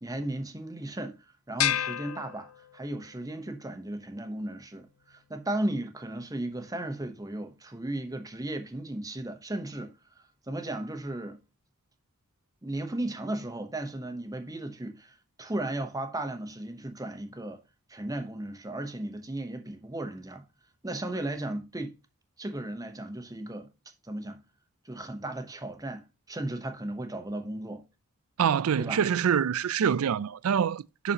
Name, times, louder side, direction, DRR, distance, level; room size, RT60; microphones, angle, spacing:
voice 1, 0.0-9.9 10.5-11.4 12.6-17.6 17.9-20.4 20.8-22.0 22.4-23.7 24.0-24.4 24.8-26.0 26.3-27.8 28.8-29.0, right 1 dB, 15° right, 0.9 m, -35 dB
sound 1, 1.6-3.1, left 11 dB, 70° left, 0.4 m, -30 dB
voice 2, 28.4-31.1, right 8 dB, 70° right, 0.4 m, -25 dB
10.5 x 4.2 x 2.9 m
head